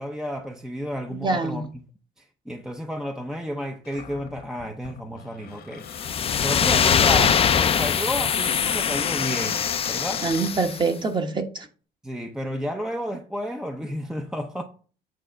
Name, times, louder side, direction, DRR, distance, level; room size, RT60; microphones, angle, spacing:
voice 1, 0.0-1.7 2.2-5.9 6.4-10.2 12.0-14.6, equal, 5° right, 0.7 m, -32 dB
voice 2, 1.1-1.6 10.2-11.7, right 4 dB, 25° right, 1.3 m, -25 dB
Cupboard open or close, 3.8-10.5, left 8 dB, 70° left, 1.2 m, -38 dB
sound 1, 5.9-10.8, left 7 dB, 35° left, 0.5 m, -22 dB
9.0 x 3.3 x 6.3 m
cardioid pair, 110°, 17 cm